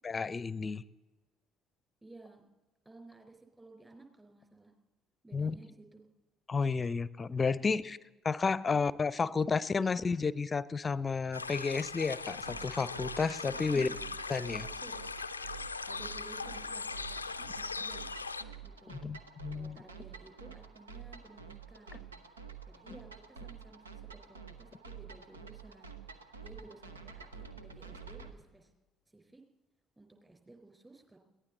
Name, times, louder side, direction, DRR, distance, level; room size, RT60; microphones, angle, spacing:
voice 1, 0.0-0.8 5.3-5.5 6.5-8.0 8.2-13.9 14.3-14.7 18.9-19.8, left 4 dB, 30° left, 20 dB, 0.6 m, -31 dB
voice 2, 2.0-2.4 2.8-4.7 5.2-6.0 7.6-8.0 8.5-8.8 9.2-10.2 13.5-14.0 14.6-15.0 15.9-18.1 18.6-19.1 19.5-22.1 22.7-25.9 26.4-28.7 29.1-29.4 30.0-31.2, right 2 dB, 20° right, 4 dB, 4.2 m, -55 dB
sound 1, 11.3-18.4, left 4 dB, 85° left, 0.4 m, -40 dB
sound 2, 12.5-28.3, right 6 dB, 80° right, 0.9 m, -49 dB
22.0 x 16.5 x 4.0 m, 1.1 s
figure-of-eight pair, 50°, 0 cm